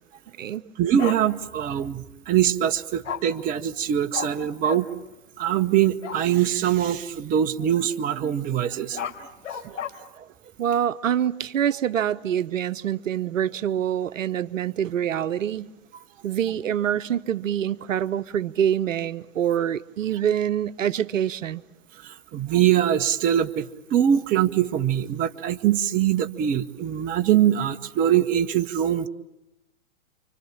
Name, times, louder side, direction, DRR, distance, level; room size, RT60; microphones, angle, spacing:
voice 1, 0.8-4.9 5.4-9.3 9.5-9.8 10.2-10.3 22.0-29.1, right 10 dB, 20° right, 1.0 m, -23 dB
Bark, 1.0-1.2 3.0-3.2 4.1-4.3 4.6-4.8 6.0-6.2 8.7-9.9, left 8 dB, 60° left, 4.7 m, -32 dB
voice 2, 10.6-15.7 16.2-21.6, right 9 dB, 70° right, 1.1 m, -25 dB
29.5 x 25.0 x 7.3 m
hypercardioid pair, 125°, 41 cm